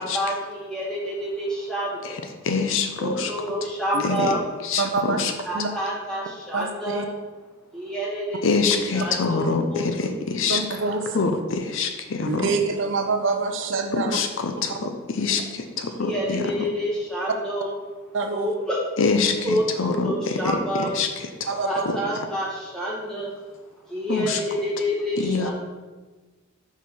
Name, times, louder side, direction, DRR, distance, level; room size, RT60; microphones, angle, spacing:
voice 1, 0.0-2.2 3.0-4.4 5.5-7.0 7.7-10.1 16.0-17.7 18.3-18.8 19.4-20.9 21.6-23.3 23.9-25.5, equal, 5° left, -6 dB, 1.4 m, -28 dB
voice 2, 2.4-3.3 4.0-4.3 4.6-5.3 8.4-10.6 11.1-12.4 13.9-16.5 19.0-20.6 20.9-21.5 21.9-22.0 24.1-24.4 25.2-25.5, left 4 dB, 60° left, 6 dB, 0.5 m, -25 dB
voice 3, 4.8-5.2 5.5-5.7 6.5-7.1 10.5-11.3 12.3-14.2 14.7-14.9 18.1-18.5 21.5-21.8, right 4 dB, 60° right, 5 dB, 0.6 m, -26 dB
4.7 x 4.5 x 5.3 m, 1.3 s
head